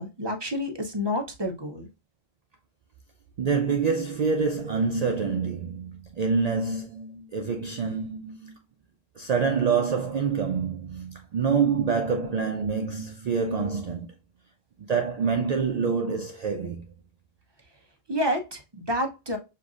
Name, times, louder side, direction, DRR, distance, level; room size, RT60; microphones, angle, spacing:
voice 1, 0.0-1.9 18.1-19.4, left 1 dB, 25° right, 0.7 m, -29 dB
voice 2, 3.4-8.6 9.2-14.1 14.8-16.9, right 5 dB, 75° right, 0.3 m, -26 dB
6.5 x 2.6 x 2.4 m
omnidirectional pair, 1.2 m